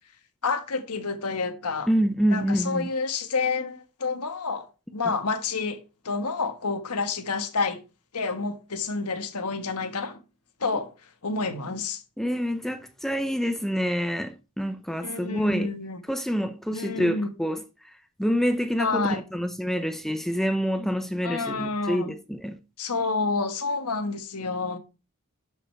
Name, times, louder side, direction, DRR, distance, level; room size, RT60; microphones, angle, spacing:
voice 1, 0.4-1.9 2.3-4.6 4.9-5.8 6.0-7.8 8.1-10.2 10.6-10.9 11.2-12.0 15.0-16.0 16.7-17.3 18.8-19.2 21.2-22.1 22.8-24.8, left 4 dB, 85° left, 1.4 m, -29 dB
voice 2, 1.9-2.9 12.2-15.7 16.1-17.6 18.2-22.6, equal, ahead, 0.6 m, -27 dB
12.0 x 5.3 x 4.5 m
head